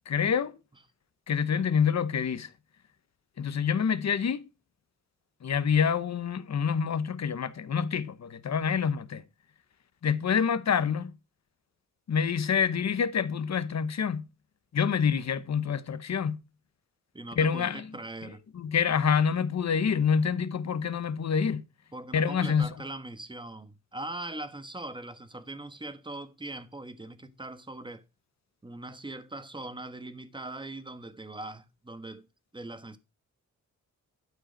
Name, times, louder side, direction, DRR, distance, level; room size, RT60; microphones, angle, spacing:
voice 1, 0.1-0.5 1.3-2.5 3.4-4.5 5.4-9.2 10.0-11.1 12.1-14.3 14.7-16.4 17.4-18.0 18.5-21.6 22.1-22.7, left 7 dB, 55° left, 0.9 m, -27 dB
voice 2, 17.1-18.4 21.9-28.0 28.6-32.3 32.5-33.0, right 2 dB, 15° right, 1.2 m, -41 dB
12.0 x 5.0 x 5.1 m
wide cardioid pair, 100°, 32 cm